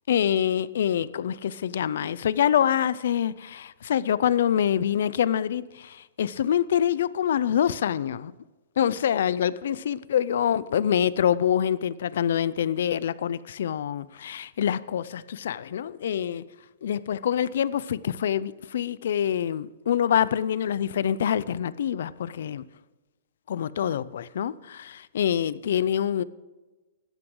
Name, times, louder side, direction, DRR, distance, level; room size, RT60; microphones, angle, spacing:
voice 1, 0.1-8.3 8.8-16.5 16.8-22.6 23.5-26.2, left 9 dB, 70° left, 0.5 m, -25 dB
16.0 x 13.0 x 3.9 m
hypercardioid pair, 160°, 0 cm